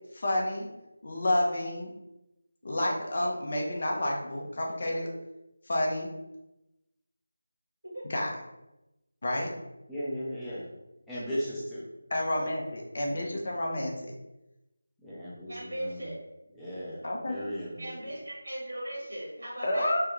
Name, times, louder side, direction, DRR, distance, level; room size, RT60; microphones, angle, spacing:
voice 1, 0.1-0.7 1.0-1.9 2.6-5.1 5.7-6.1 8.1-8.3 9.2-9.5 12.1-14.1 17.0-17.4 19.6-20.0, left 1 dB, 45° left, -1 dB, 0.7 m, -29 dB
voice 2, 9.9-10.7 11.1-11.8 12.3-12.5 13.1-13.4 15.0-16.1 16.5-17.9, equal, 5° left, -10 dB, 0.6 m, -37 dB
voice 3, 15.5-16.2 17.8-19.9, right 1 dB, 70° right, -5 dB, 1.3 m, -38 dB
3.4 x 2.2 x 2.9 m, 0.94 s
figure-of-eight pair, 165°, 0 cm